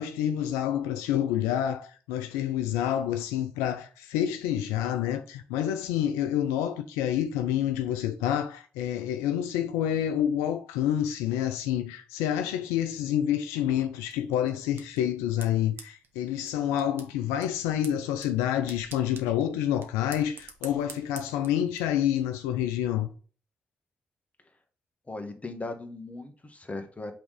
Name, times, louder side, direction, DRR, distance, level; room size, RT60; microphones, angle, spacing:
voice 1, 0.0-23.1, left 10 dB, 85° left, 0.4 m, -28 dB
sound 1, 14.1-21.8, right 4 dB, 60° right, 1.3 m, -49 dB
voice 2, 25.1-27.1, left 2 dB, 30° left, 1.6 m, -38 dB
6.0 x 3.6 x 4.9 m
hypercardioid pair, 40°, 5 cm